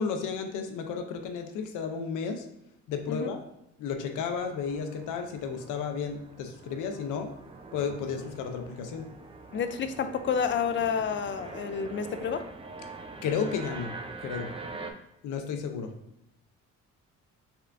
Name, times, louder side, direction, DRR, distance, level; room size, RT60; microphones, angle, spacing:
voice 1, 0.0-2.4 2.9-3.4 3.8-7.3 7.7-9.1 13.2-13.9 14.2-14.5 15.2-15.9, left 6 dB, 90° left, 5 dB, 0.6 m, -33 dB
sound 1, 4.0-14.9, right 3 dB, 20° right, 0.5 m, -44 dB
voice 2, 9.5-12.5 14.7-14.9, left 6 dB, 40° left, 10 dB, 0.5 m, -30 dB
5.7 x 3.3 x 2.5 m, 0.80 s
cardioid pair, 90°, 30 cm